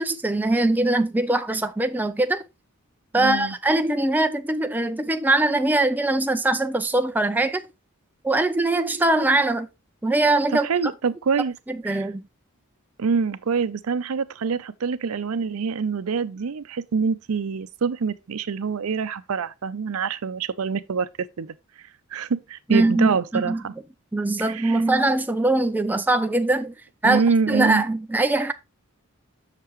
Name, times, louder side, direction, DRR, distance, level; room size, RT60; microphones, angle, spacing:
voice 1, 0.0-2.4 3.1-7.6 8.2-9.7 10.0-10.7 11.7-12.2 22.7-23.6 24.1-26.7 27.0-27.2 27.5-28.5, right 2 dB, 10° right, 0.4 m, -22 dB
voice 2, 3.1-3.6 10.6-11.5 11.8-12.1 13.0-21.1 21.4-21.5 22.1-23.7 24.4-24.8 27.0-27.8, right 5 dB, 85° right, 0.5 m, -25 dB
6.7 x 6.6 x 3.1 m
head